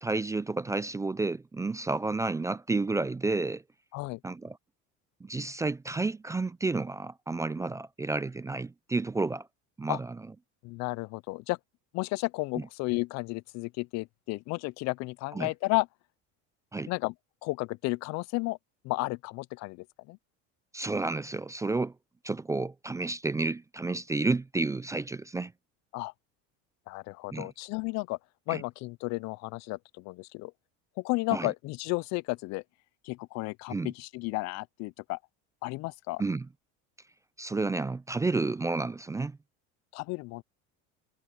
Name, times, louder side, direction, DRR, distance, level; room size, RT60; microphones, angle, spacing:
voice 1, 0.0-3.6 4.2-4.6 5.2-9.5 9.8-10.2 15.3-15.5 16.7-16.9 20.7-21.9 22.2-25.5 27.3-27.5 28.5-28.6 31.3-31.5 33.7-33.9 36.2-36.5 37.4-39.4, right 3 dB, 10° right, 0.4 m, -31 dB
voice 2, 10.6-11.6 11.9-15.9 16.9-17.1 17.4-18.6 18.8-20.2 25.9-26.1 26.9-28.2 28.5-30.5 31.0-32.6 33.0-35.2 35.6-36.2 39.9-40.4, left 24 dB, 55° left, 0.4 m, -33 dB
cardioid pair, 125°, 32 cm